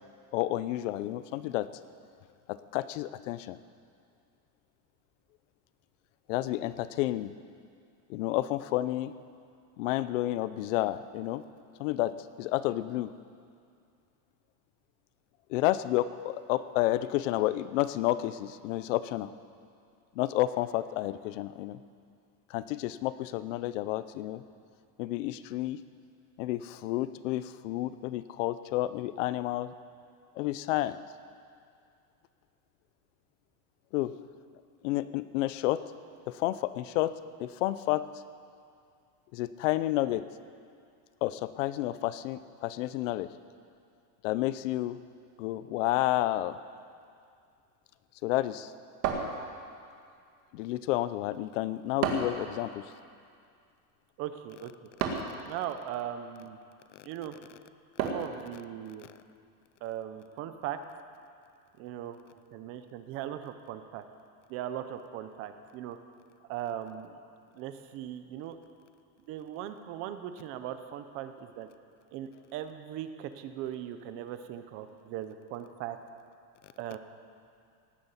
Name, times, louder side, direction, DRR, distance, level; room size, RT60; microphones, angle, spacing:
voice 1, 0.3-1.7 2.5-3.6 6.3-7.3 8.1-9.1 9.8-11.4 11.8-13.1 15.5-19.3 20.2-21.8 22.5-24.4 25.0-25.8 26.4-29.7 30.4-31.0 33.9-34.1 34.8-35.8 36.3-37.1 37.4-38.1 39.3-40.2 41.2-43.3 44.2-45.0 45.4-46.6 48.2-48.7 50.5-52.9, left 15 dB, 55° left, 15 dB, 0.7 m, -30 dB
sound 1, 49.0-49.9 52.0-52.5 55.0-55.4 58.0-58.4, right 6 dB, 80° right, 2.3 m, -31 dB
voice 2, 54.2-54.7 55.5-56.6 57.0-57.4 58.0-59.1 59.8-60.8 61.8-62.2 62.5-64.0 64.5-66.0 66.5-67.2 67.5-68.6 69.3-71.7 72.1-76.0 76.8-77.0, right 11 dB, 30° right, 9 dB, 0.6 m, -39 dB
18.0 x 9.8 x 8.2 m, 2.3 s
supercardioid pair, 175°, 47 cm